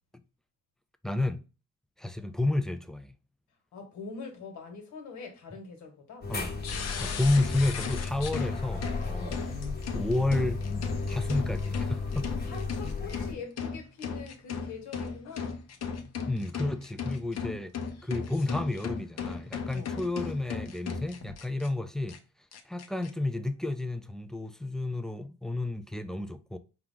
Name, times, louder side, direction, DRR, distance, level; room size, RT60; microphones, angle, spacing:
voice 1, 1.0-1.4 2.0-3.2 6.3-6.6 7.0-9.4 9.9-10.6 11.1-12.3 16.3-17.7 18.0-22.2 22.7-26.6, left 2 dB, ahead, 0.4 m, -31 dB
voice 2, 3.7-6.3 9.1-9.4 11.2-12.1 12.4-15.7 19.7-19.9, left 5 dB, 75° left, 1.4 m, -44 dB
sound 1, 6.2-13.3, left 4 dB, 30° left, 1.0 m, -34 dB
sound 2, 6.6-21.7 22.1-22.2 22.5-23.1, left 5 dB, 55° left, 0.8 m, -37 dB
4.6 x 2.4 x 3.7 m
cardioid pair, 90°, 30 cm